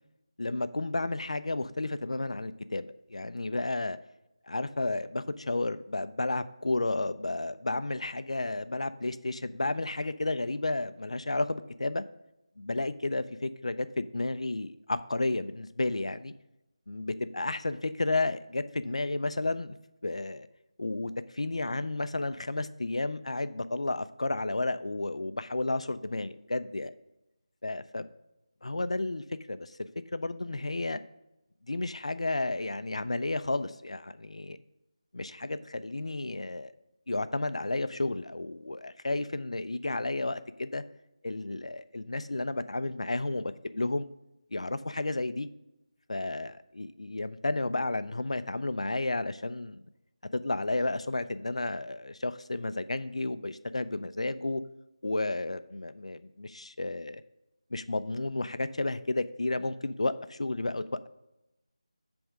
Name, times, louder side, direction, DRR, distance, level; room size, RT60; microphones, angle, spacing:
voice 1, 0.4-4.0 4.5-12.0 12.6-16.3 16.9-19.8 20.0-20.5 20.8-26.9 27.6-28.1 28.6-31.0 31.7-34.6 35.1-36.7 37.1-40.8 41.2-44.1 44.5-45.5 46.1-49.8 50.3-54.6 55.0-57.2 57.7-61.1, left 2 dB, 80° left, 12 dB, 0.5 m, -32 dB
8.0 x 3.5 x 6.3 m, 0.90 s
figure-of-eight pair, 180°, 3 cm